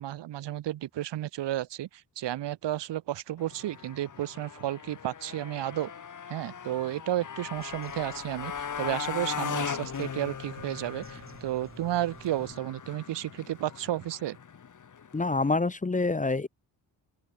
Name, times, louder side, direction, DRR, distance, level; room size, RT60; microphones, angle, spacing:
voice 1, 0.0-5.9 6.3-14.4, right 13 dB, 85° right, 2.3 m, -32 dB
Motorcycle, 3.4-15.5, left 7 dB, 45° left, 2.4 m, -39 dB
Bird vocalization bird call bird song, 7.5-12.6, right 4 dB, 30° right, 7.4 m, -53 dB
voice 2, 15.1-16.5, left 3 dB, 20° left, 1.2 m, -26 dB
open air
cardioid pair, 90°, 41 cm